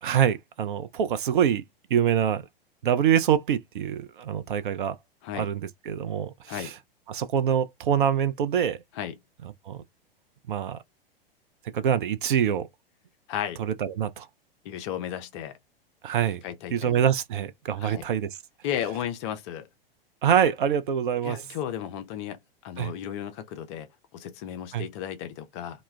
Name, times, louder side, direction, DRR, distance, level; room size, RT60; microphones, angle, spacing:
voice 1, 0.0-1.6 1.9-2.4 2.8-5.0 5.3-6.7 7.1-8.8 9.7-9.8 10.5-10.8 11.7-12.7 13.6-14.3 16.0-16.4 16.7-18.4 20.2-21.4 22.8-22.9 24.7-24.9, right 9 dB, 60° right, 0.5 m, -25 dB
voice 2, 13.3-13.6 14.6-15.6 16.4-17.0 17.8-18.1 18.6-19.7 21.2-23.9 24.1-25.8, left 10 dB, 30° left, 0.4 m, -34 dB
2.2 x 2.1 x 3.1 m
figure-of-eight pair, 95°, 30 cm